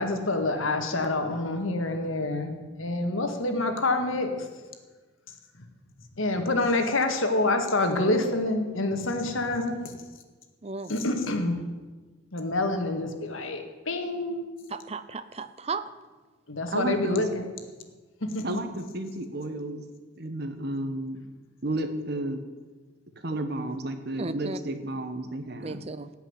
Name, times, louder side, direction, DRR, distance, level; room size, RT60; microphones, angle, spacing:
voice 1, 0.0-2.5 2.8-4.5 6.2-9.9 10.9-11.6 12.3-14.4 16.5-17.3 18.2-18.6, left 2 dB, 80° left, 5 dB, 1.9 m, -27 dB
voice 2, 10.6-10.9 14.7-15.9 24.2-24.6 25.6-26.1, right 4 dB, 30° right, 13 dB, 0.5 m, -35 dB
voice 3, 16.7-17.3 18.4-19.8 20.2-21.2 21.6-22.4 23.2-25.8, right 1 dB, 50° right, 8 dB, 1.4 m, -32 dB
17.0 x 5.9 x 9.8 m, 1.3 s
head